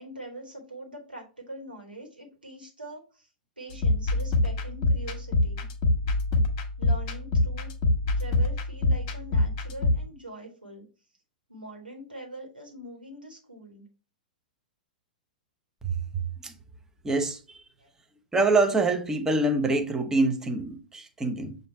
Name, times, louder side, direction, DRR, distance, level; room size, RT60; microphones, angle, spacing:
voice 1, 0.0-3.3 3.6-5.7 6.8-7.7 8.2-10.8 11.5-13.8 17.8-17.9, right 1 dB, 90° right, 1.4 m, -43 dB
sound 1, 3.7-10.0, left 2 dB, 45° left, 1.0 m, -25 dB
voice 2, 15.8-16.5 17.0-17.6 18.3-21.6, right 2 dB, 10° right, 0.6 m, -25 dB
6.7 x 2.6 x 3.1 m
figure-of-eight pair, 105°, 5 cm